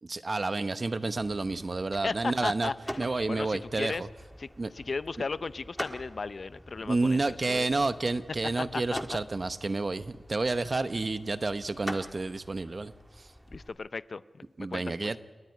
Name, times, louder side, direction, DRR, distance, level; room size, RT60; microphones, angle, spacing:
voice 1, 0.0-2.7 3.0-4.1 4.6-4.7 6.8-13.3 14.6-15.2, right 3 dB, 50° right, 12 dB, 0.9 m, -30 dB
sound 1, 1.1-13.7, equal, ahead, 1.7 m, -45 dB
voice 2, 2.0-2.7 3.3-4.0 4.4-4.5 4.7-7.7 8.7-9.0 13.5-15.0, left 4 dB, 65° left, 16 dB, 0.5 m, -35 dB
29.0 x 9.9 x 9.4 m, 1.5 s
wide cardioid pair, 70°, 0 cm